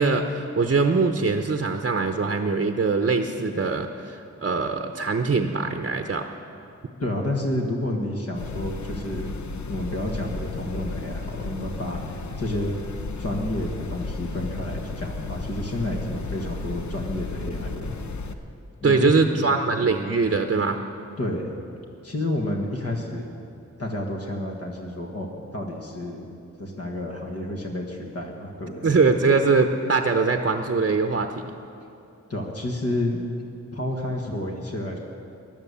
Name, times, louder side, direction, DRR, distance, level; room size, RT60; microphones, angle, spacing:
voice 1, 0.0-6.3 18.8-20.8 28.8-31.5, right 4 dB, 40° right, 6 dB, 0.8 m, -22 dB
voice 2, 7.0-9.4 9.7-12.8 13.2-17.9 18.8-19.5 21.2-21.5 22.0-23.4 23.8-26.3 26.6-28.9 32.3-33.2 33.7-35.0, left 1 dB, 55° left, 0 dB, 1.7 m, -30 dB
sound 1, 8.3-18.3, left 3 dB, 70° left, 0.9 m, -33 dB
15.0 x 11.0 x 7.0 m, 2.7 s
cardioid pair, 65°, 30 cm